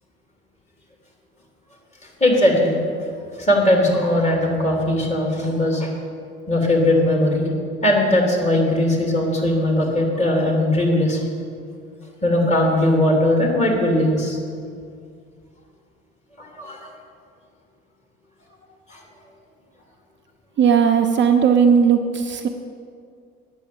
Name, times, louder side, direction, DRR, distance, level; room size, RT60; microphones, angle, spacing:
voice 1, 2.2-2.8 3.4-5.9 6.5-7.5 7.8-11.2 12.2-14.4 16.4-16.9 18.9-19.0, left 1 dB, 20° left, -1 dB, 3.6 m, -19 dB
voice 2, 20.6-22.5, right 7 dB, 40° right, 5 dB, 0.8 m, -16 dB
9.3 x 7.0 x 8.8 m, 2.3 s
hypercardioid pair, 70°, 30 cm